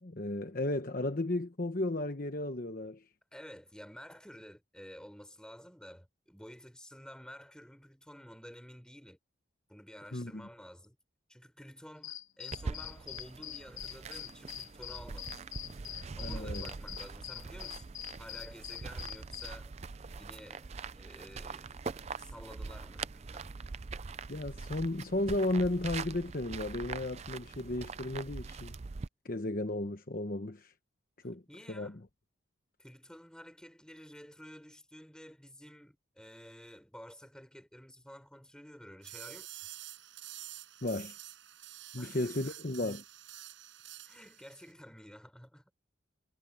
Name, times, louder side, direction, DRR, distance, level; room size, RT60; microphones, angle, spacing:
voice 1, 0.0-3.0 10.1-10.5 16.2-16.7 24.3-28.7 29.2-30.7 31.2-31.4 31.7-32.0 40.8-41.2 41.9-43.0, left 1 dB, 45° left, 1.0 m, -34 dB
voice 2, 3.3-9.2 9.7-11.0 11.3-15.4 15.8-19.7 20.2-21.7 22.2-23.5 31.5-32.0 32.8-39.5 42.0-42.6 44.1-45.6, equal, 5° left, 5.2 m, -51 dB
sound 1, 12.0-19.6, left 13 dB, 90° left, 2.1 m, -44 dB
sound 2, 12.5-29.1, right 4 dB, 35° right, 0.4 m, -43 dB
sound 3, 39.0-44.7, right 14 dB, 70° right, 5.9 m, -49 dB
head